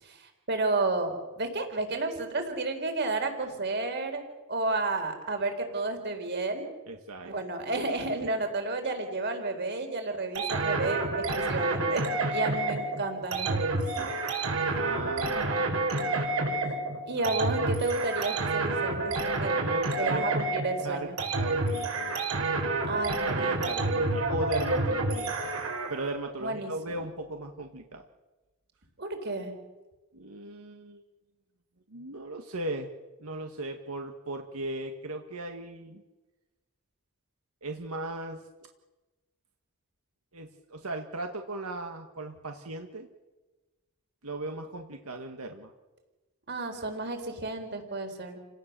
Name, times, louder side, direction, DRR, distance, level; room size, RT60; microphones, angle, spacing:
voice 1, 0.0-4.2 4.5-6.7 7.2-12.0 12.3-14.1 17.1-19.6 20.0-21.2 22.9-23.9 26.4-27.0 29.0-29.5 46.5-48.4, right 2 dB, 50° right, 5 dB, 4.2 m, -32 dB
voice 2, 6.9-7.3 14.7-16.1 16.4-17.3 19.5-20.3 20.8-21.1 21.4-22.2 22.6-23.0 23.3-25.5 25.9-28.0 30.1-31.0 31.9-32.9 33.2-36.0 37.6-38.4 40.3-43.1 44.2-45.7, right 2 dB, 85° right, 4 dB, 1.8 m, -37 dB
sound 1, 10.4-26.1, right 2 dB, 70° right, 4.9 m, -29 dB
30.0 x 18.0 x 6.9 m, 1.2 s
head